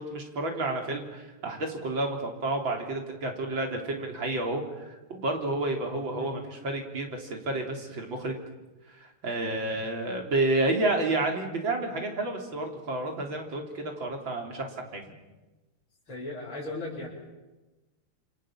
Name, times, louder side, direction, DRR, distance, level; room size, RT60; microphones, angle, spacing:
voice 1, 0.0-8.4 8.9-15.0, right 2 dB, 60° right, 3 dB, 4.3 m, -30 dB
voice 2, 16.1-17.1, left 2 dB, 70° left, -9 dB, 6.4 m, -37 dB
28.0 x 26.5 x 7.6 m, 1.1 s
omnidirectional pair, 2.3 m